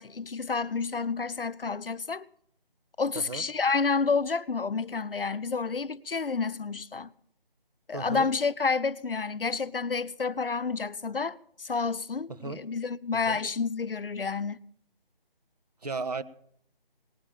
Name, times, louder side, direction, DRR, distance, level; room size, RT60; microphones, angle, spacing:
voice 1, 0.0-2.2 3.0-7.1 7.9-14.6, left 4 dB, 70° left, 0.9 m, -29 dB
voice 2, 7.9-8.3 12.4-12.6 13.3-13.4 15.8-16.2, right 4 dB, 45° right, 1.4 m, -34 dB
19.0 x 9.8 x 7.4 m
figure-of-eight pair, 165°, 29 cm